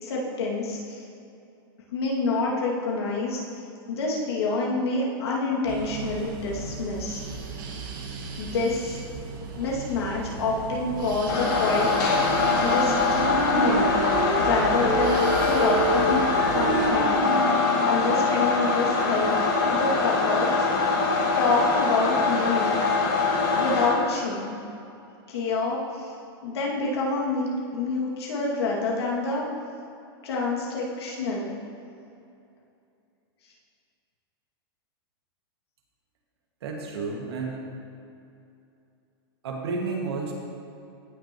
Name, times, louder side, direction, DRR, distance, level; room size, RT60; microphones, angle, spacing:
voice 1, 0.0-1.1 1.9-3.4 3.9-7.2 8.4-9.0 9.6-11.9 12.6-12.9 13.4-14.0 14.4-17.2 17.8-21.0 21.4-22.8 23.5-24.6 25.3-26.1 26.4-29.5 30.2-31.5, left 3 dB, 80° left, -3 dB, 2.3 m, -27 dB
sound 1, 5.7-16.9, right 4 dB, 55° right, 1.3 m, -36 dB
sound 2, 11.3-23.9, left 4 dB, 45° left, 2.2 m, -23 dB
Wind instrument woodwind instrument, 12.3-14.5 14.8-17.9, right 1 dB, 15° right, 2.0 m, -27 dB
voice 2, 36.6-37.8 39.4-40.3, right 4 dB, 85° right, -1 dB, 1.9 m, -31 dB
16.5 x 6.2 x 3.0 m, 2.6 s
supercardioid pair, 170°, 13 cm